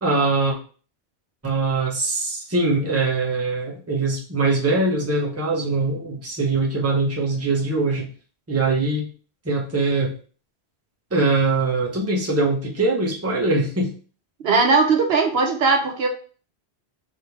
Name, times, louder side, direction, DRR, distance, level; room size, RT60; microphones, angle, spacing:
voice 1, 0.0-0.6 1.4-8.1 8.5-9.1 9.4-10.1 11.1-13.9, right 3 dB, 15° right, -2 dB, 0.8 m, -22 dB
voice 2, 14.4-16.1, right 4 dB, 70° right, 3 dB, 1.0 m, -19 dB
3.5 x 2.7 x 4.5 m, 0.39 s
omnidirectional pair, 1.1 m